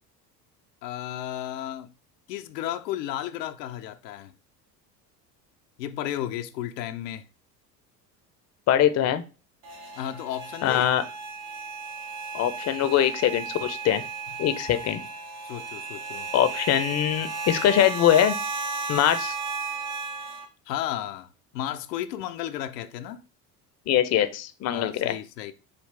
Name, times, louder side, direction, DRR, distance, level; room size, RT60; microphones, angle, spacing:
voice 1, 0.8-1.9 2.3-4.3 5.8-7.2 10.0-10.9 14.7-14.8 15.4-16.3 20.7-23.2 24.7-25.5, left 12 dB, 85° left, 0.5 m, -33 dB
voice 2, 8.7-9.2 10.6-11.0 12.3-14.0 14.4-15.0 16.3-18.4 18.9-19.3 23.9-25.2, left 11 dB, 35° left, 0.5 m, -22 dB
sound 1, 9.6-20.4, right 4 dB, 75° right, 1.3 m, -34 dB
5.0 x 2.4 x 3.2 m
hypercardioid pair, 70°, 48 cm